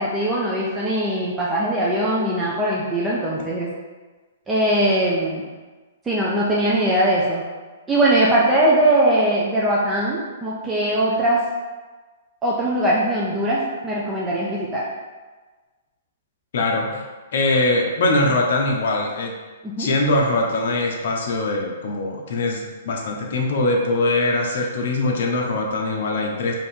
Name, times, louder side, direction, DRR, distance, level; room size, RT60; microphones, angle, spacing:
voice 1, 0.0-3.7 4.5-5.4 6.1-7.4 7.9-11.4 12.4-14.8 19.6-19.9, right 1 dB, 10° right, -6 dB, 0.4 m, -20 dB
voice 2, 16.5-17.0 17.3-19.3 19.8-26.5, left 2 dB, 55° left, 0 dB, 0.8 m, -22 dB
3.5 x 2.8 x 4.3 m, 1.3 s
hypercardioid pair, 170°, 0 cm